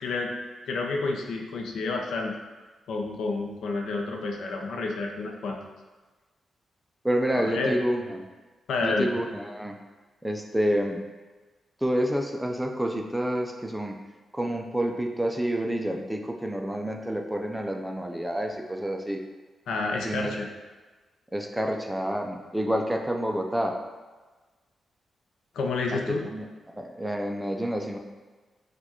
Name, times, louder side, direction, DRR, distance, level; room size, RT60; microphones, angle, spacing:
voice 1, 0.0-0.3 0.7-2.4 2.9-5.6 7.3-7.7 8.7-9.1 19.7-20.5 25.5-26.3, left 3 dB, 90° left, 2 dB, 0.5 m, -29 dB
voice 2, 7.0-8.3 8.8-9.8 10.2-11.0 11.8-14.0 14.3-19.2 20.0-20.5 21.3-23.8 25.9-26.5 26.8-28.0, equal, 5° right, 2 dB, 0.4 m, -28 dB
4.5 x 2.2 x 4.3 m, 1.3 s
wide cardioid pair, 140°, 0 cm